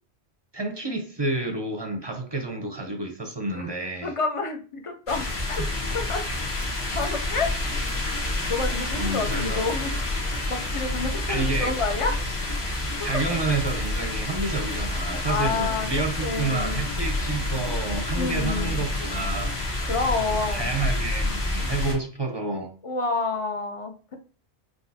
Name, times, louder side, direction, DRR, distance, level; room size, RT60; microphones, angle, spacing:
voice 1, 0.5-4.1 9.0-9.7 11.3-11.8 13.0-19.6 20.5-22.7, right 3 dB, 30° right, 0.5 m, -29 dB
voice 2, 4.0-5.6 5.9-6.2 6.9-7.5 8.5-9.9 10.5-12.3 13.0-13.2 15.3-16.8 18.1-18.8 19.8-20.7 22.8-24.1, left 3 dB, 35° left, 0.6 m, -29 dB
sound 1, 5.1-21.9, left 2 dB, 65° left, 1.2 m, -28 dB
sound 2, 7.5-19.6, equal, 20° left, 1.1 m, -43 dB
5.8 x 2.6 x 2.7 m
omnidirectional pair, 1.2 m